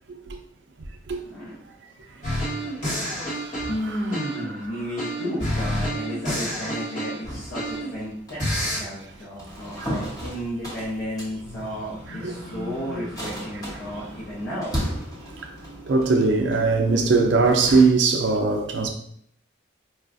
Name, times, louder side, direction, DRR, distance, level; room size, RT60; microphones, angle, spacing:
voice 1, 1.2-1.6 3.6-14.7, equal, 70° left, 1.0 m, -33 dB
sound 1, 2.2-4.6 5.0-8.0 8.4-8.8, equal, 40° left, 1.2 m, -28 dB
voice 2, 3.2-4.0 12.1-12.3 15.4-15.5 15.9-18.9, right 3 dB, 65° right, 0.4 m, -21 dB
sound 2, 7.2-17.8, equal, 20° left, 1.0 m, -35 dB
4.7 x 2.3 x 2.5 m
head